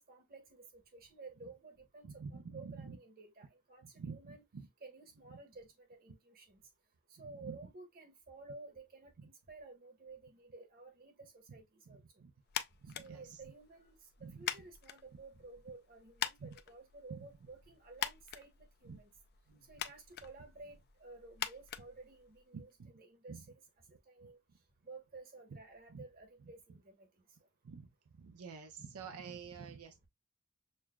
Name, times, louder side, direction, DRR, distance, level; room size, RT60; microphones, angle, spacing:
voice 1, 0.0-4.4 4.8-6.6 7.1-12.0 13.0-19.1 19.5-23.5 24.1-24.4 24.8-27.1 29.5-29.7, right 3 dB, 45° right, 1.2 m, -54 dB
voice 2, 2.0-3.0 3.8-4.7 7.2-7.6 9.2-9.3 12.2-12.3 12.8-13.4 14.2-14.4 16.4-16.5 17.1-17.2 18.8-19.0 22.5-22.9 23.3-23.4 24.2-24.3 25.5-25.6 25.9-26.0 26.4-26.5 27.6-27.9 28.2-30.1, right 5 dB, 85° right, 0.5 m, -48 dB
sound 1, 12.5-22.7, left 10 dB, 50° left, 0.4 m, -45 dB
6.4 x 2.3 x 2.3 m
head